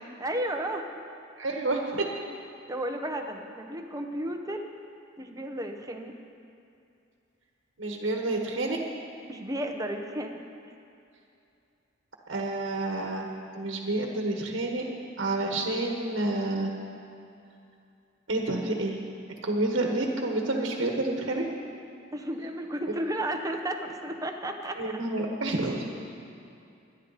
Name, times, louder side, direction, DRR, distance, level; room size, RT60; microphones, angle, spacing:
voice 1, 0.2-0.9 2.7-4.7 5.2-6.1 9.3-10.4 22.1-25.0, right 1 dB, 20° right, 4 dB, 0.9 m, -33 dB
voice 2, 1.4-2.0 7.8-8.8 12.3-13.3 13.5-14.8 15.2-16.7 18.3-19.0 19.4-21.4 24.8-25.9, right 2 dB, 70° right, 1 dB, 1.3 m, -29 dB
23.5 x 10.5 x 4.1 m, 2.6 s
head